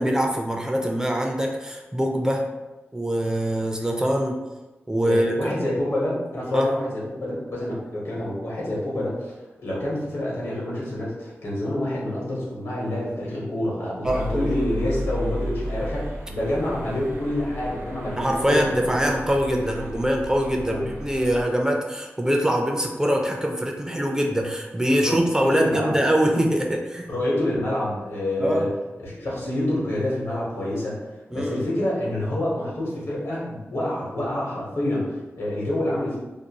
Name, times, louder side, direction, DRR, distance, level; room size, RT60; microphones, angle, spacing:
voice 1, 0.0-2.5 2.9-4.4 4.9-5.5 6.5-6.7 14.0-14.6 18.2-27.1 28.4-28.7 31.3-31.7, equal, 15° right, 1 dB, 0.3 m, -23 dB
voice 2, 5.0-19.1 20.7-20.8 25.0-25.2 25.5-26.0 27.1-28.7 29.0-36.2, left 1 dB, 75° left, -5 dB, 1.0 m, -27 dB
sound 1, 14.0-21.4, equal, 70° right, 0.8 m, -33 dB
2.5 x 2.2 x 2.8 m, 1.1 s
wide cardioid pair, 75°, 5 cm